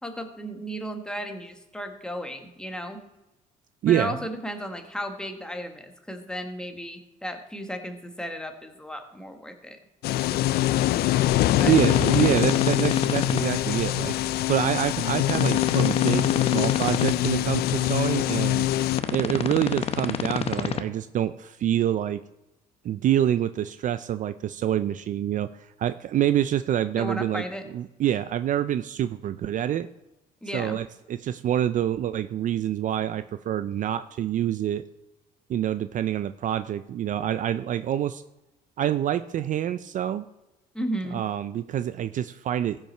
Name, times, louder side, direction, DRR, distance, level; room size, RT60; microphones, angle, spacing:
voice 1, 0.0-3.0 3.9-9.8 11.5-11.8 27.0-27.7 30.4-30.8 40.7-41.2, equal, 5° left, 5 dB, 1.4 m, -34 dB
voice 2, 3.8-4.1 11.7-14.1 14.5-18.7 19.1-22.2 22.8-27.4 27.7-29.9 30.5-34.8 35.5-38.2 38.8-40.3 41.1-42.8, right 11 dB, 50° right, 13 dB, 0.4 m, -26 dB
sound 1, 10.0-19.0, left 14 dB, 70° left, 0.4 m, -24 dB
sound 2, 11.5-13.4 15.2-17.1 18.9-20.8, left 7 dB, 35° left, 0.7 m, -29 dB
15.0 x 5.6 x 4.4 m, 1.0 s
cardioid pair, 110°, 17 cm